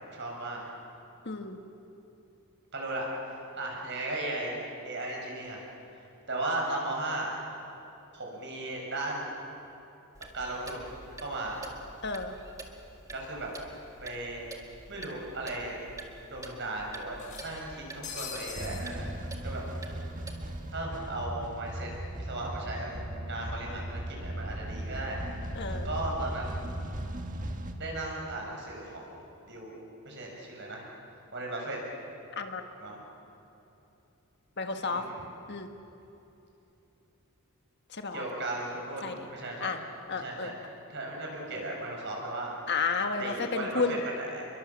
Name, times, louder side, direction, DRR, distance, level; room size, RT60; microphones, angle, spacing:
voice 1, 0.1-0.6 2.7-3.1 3.5-4.6 4.8-5.6 6.3-7.3 8.1-9.3 10.3-10.9 11.2-11.6 13.1-14.4 14.9-15.8 16.3-19.1 19.4-20.0 20.7-21.9 22.1-22.9 23.3-25.4 25.8-26.6 27.8-29.7 30.0-30.9 31.3-31.8 32.8-33.0 34.8-35.1 38.1-39.7 40.1-40.6 40.9-42.5 43.2-44.5, right 2 dB, 55° right, -1 dB, 6.8 m, -36 dB
voice 2, 1.2-1.6 12.0-12.4 25.5-25.9 32.3-32.6 34.6-35.1 35.5-35.7 37.9-38.2 39.0-39.3 39.6-39.8 40.1-40.5 42.7-44.0, left 4 dB, 50° left, 6 dB, 1.7 m, -32 dB
Clock, 10.1-20.7, right 2 dB, 15° right, 2.0 m, -47 dB
sound 1, 17.2-18.9, left 6 dB, 35° left, 3.7 m, -42 dB
sound 2, 18.5-27.7, right 1 dB, 35° right, 1.7 m, -37 dB
29.0 x 22.5 x 7.5 m, 2.9 s
head